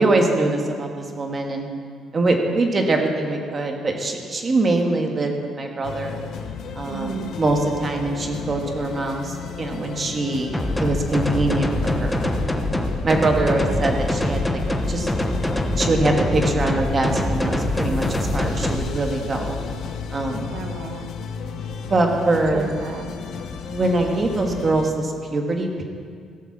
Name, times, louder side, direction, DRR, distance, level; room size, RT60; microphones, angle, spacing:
voice 1, 0.0-1.7 2.1-6.2 6.7-12.2 13.0-14.6 14.9-15.1 15.8-19.6 20.1-20.5 21.9-22.7 23.7-25.8, right 2 dB, 25° right, 3 dB, 1.5 m, -23 dB
sound 1, 5.8-24.9, left 6 dB, 60° left, 0.9 m, -33 dB
voice 2, 6.9-7.3 13.4-13.7 20.5-21.1 22.5-23.1, right 7 dB, 75° right, 5 dB, 1.3 m, -34 dB
sound 2, 10.5-18.7, left 1 dB, 5° left, 0.8 m, -24 dB
16.5 x 7.1 x 7.4 m, 2.2 s
cardioid pair, 165°, 0 cm